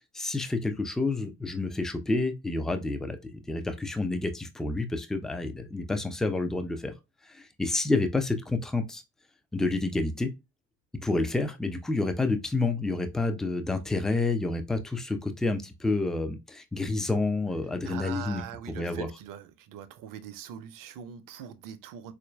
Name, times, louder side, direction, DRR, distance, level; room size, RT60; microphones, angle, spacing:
voice 1, 0.1-6.9 7.3-9.0 9.5-10.3 11.0-18.4 18.8-19.1, left 3 dB, ahead, 0.3 m, -29 dB
voice 2, 17.8-22.1, right 9 dB, 45° right, 0.6 m, -42 dB
4.1 x 2.5 x 2.2 m
figure-of-eight pair, 45°, 48 cm